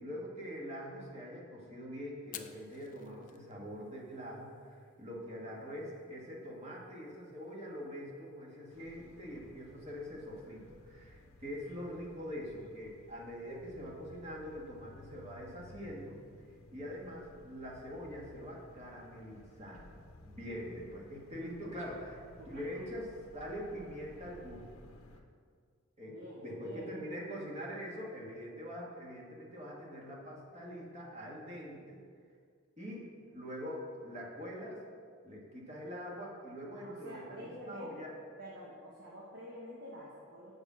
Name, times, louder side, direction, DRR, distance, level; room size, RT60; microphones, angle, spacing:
voice 1, 0.0-16.2 16.7-22.2 22.5-24.7 26.0-26.2 26.4-32.0 32.8-34.8 35.2-38.1, equal, 30° right, -3 dB, 1.6 m, -44 dB
Fire, 2.2-11.4, left 10 dB, 40° left, 0.4 m, -58 dB
voice 2, 5.1-5.5 20.5-20.7 22.4-22.5 26.1-26.9 36.7-37.9 38.4-40.5, equal, 55° right, -4 dB, 1.2 m, -49 dB
sound 1, 8.7-25.2, left 1 dB, 90° left, 0.7 m, -57 dB
6.9 x 5.4 x 6.1 m, 2.1 s
head